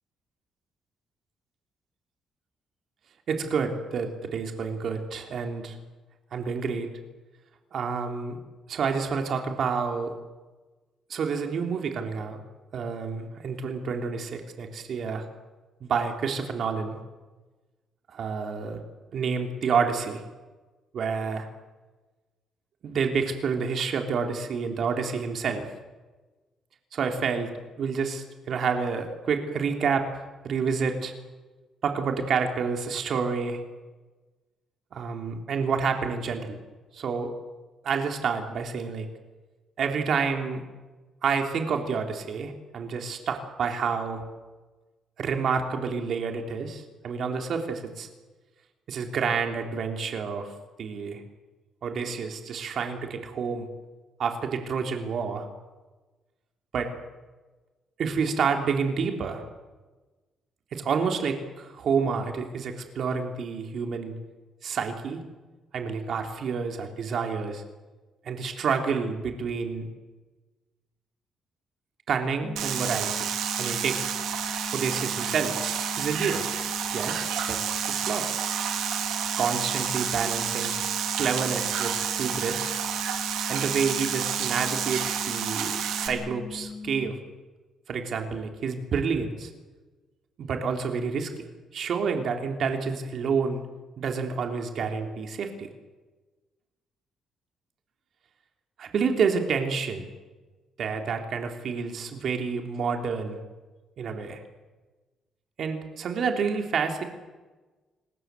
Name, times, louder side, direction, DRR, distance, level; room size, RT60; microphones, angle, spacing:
voice 1, 3.3-5.8 6.3-6.9 7.7-8.4 8.7-10.1 11.1-12.4 12.7-15.2 15.8-17.0 18.1-18.8 19.1-20.2 20.9-21.5 22.8-25.7 26.9-27.5 27.8-30.1 30.4-31.1 31.8-33.6 34.9-36.6 36.9-37.3 37.8-39.1 39.8-40.6 41.2-44.2 45.2-48.1 48.9-50.5 50.8-51.2 51.8-53.7 54.2-55.5 56.7-56.9 58.0-59.5 60.7-64.2 64.6-65.2 65.7-67.6 68.2-69.9 72.1-73.3 73.6-74.0 74.7-75.6 75.9-76.5 76.9-77.6 77.9-78.3 79.4-80.7 81.2-82.8 83.5-87.2 87.9-89.5 90.4-91.4 91.7-93.6 94.0-95.7 98.8-100.1 100.8-103.4 104.0-104.4 105.6-107.0, right 5 dB, 60° right, 4 dB, 3.8 m, -29 dB
sound 1, 72.4-87.1, left 4 dB, 50° left, 3.9 m, -40 dB
sound 2, 72.6-86.1, right 9 dB, 90° right, 3.7 m, -30 dB
26.5 x 20.5 x 7.9 m, 1.2 s
cardioid pair, 90°, 0 cm